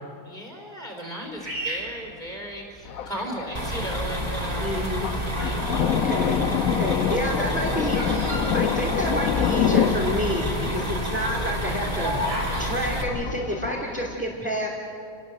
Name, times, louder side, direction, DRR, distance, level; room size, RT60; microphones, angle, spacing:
voice 1, 0.3-4.7 5.4-5.9 6.6-6.8, equal, 30° left, 0 dB, 4.1 m, -36 dB
Bird vocalization bird call bird song, 1.4-2.9 3.6-4.0 4.7-5.7 6.0-9.4 9.7-9.8 10.0-10.3 10.8-12.7, equal, 80° right, 6.9 m, -33 dB
Thunder, 2.9-14.1, left 8 dB, 65° left, 1.2 m, -28 dB
sound 1, 3.5-13.0, equal, 25° right, 2.5 m, -29 dB
voice 2, 4.6-5.1 5.9-8.2 8.5-12.2 12.6-14.7, equal, 5° right, -4 dB, 3.0 m, -29 dB
30.0 x 19.5 x 7.8 m, 2.6 s
omnidirectional pair, 1.6 m